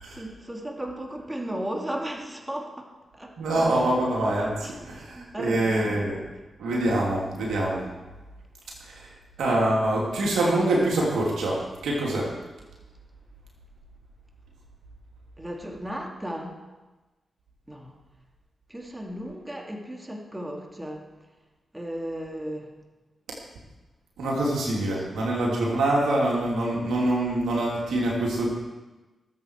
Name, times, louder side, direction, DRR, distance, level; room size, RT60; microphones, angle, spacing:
voice 1, 0.1-2.8 3.1-3.4 3.6-3.8 4.6-6.0 15.4-16.6 17.7-17.9 18.7-21.1 21.7-22.7 25.0-25.1, right 1 dB, 15° right, 1 dB, 2.7 m, -35 dB
voice 2, 3.4-6.2 6.6-7.8 8.9-9.0 9.4-12.3 24.2-28.5, right 1 dB, 85° right, -3 dB, 3.1 m, -25 dB
20.5 x 8.2 x 4.8 m, 1.2 s
supercardioid pair, 40°, 0 cm